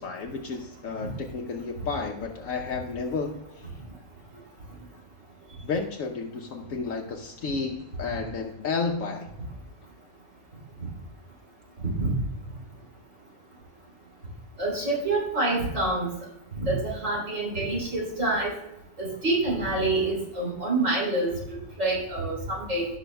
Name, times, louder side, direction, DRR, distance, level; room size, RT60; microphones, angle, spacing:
voice 1, 0.0-3.7 5.6-9.3, left 4 dB, 65° left, 3 dB, 1.1 m, -32 dB
voice 2, 11.8-12.1 14.6-16.1 16.6-18.5 19.0-21.3 21.8-22.9, right 2 dB, 55° right, -5 dB, 3.6 m, -27 dB
16.5 x 6.1 x 2.2 m, 0.91 s
omnidirectional pair, 1.6 m